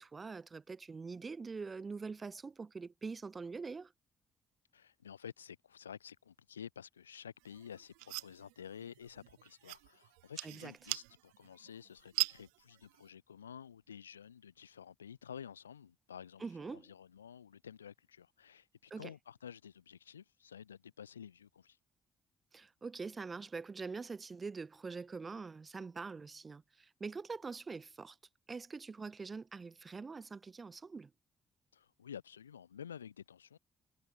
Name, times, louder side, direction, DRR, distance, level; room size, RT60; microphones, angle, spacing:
voice 1, 0.0-3.9 10.4-10.7 16.4-16.9 18.9-19.1 22.5-28.2 28.5-31.1, right 4 dB, 35° right, 1.1 m, -44 dB
voice 2, 4.7-21.8 31.7-33.6, left 8 dB, 85° left, 3.3 m, -51 dB
sound 1, 7.4-13.1, right 40 dB or more, 70° right, 0.9 m, -42 dB
figure-of-eight pair, 40°, 0 cm